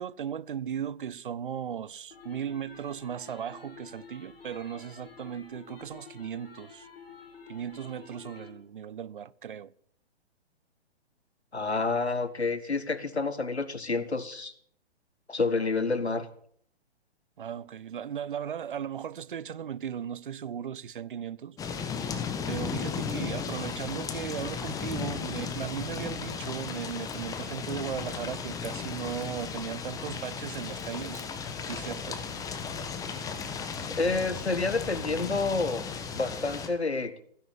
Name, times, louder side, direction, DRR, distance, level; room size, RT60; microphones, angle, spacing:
voice 1, 0.0-6.9 7.5-9.7 17.4-21.6 22.5-31.2 31.6-32.2 32.7-32.9, right 8 dB, 50° right, 0.7 m, -37 dB
sound 1, 2.1-8.5, left 5 dB, 60° left, 3.0 m, -50 dB
voice 2, 11.5-14.5 15.3-16.2 34.0-35.8 36.1-37.2, left 3 dB, 80° left, 1.7 m, -29 dB
sound 2, 21.6-36.7, left 6 dB, 10° left, 1.3 m, -35 dB
16.0 x 10.5 x 8.4 m
figure-of-eight pair, 125°, 32 cm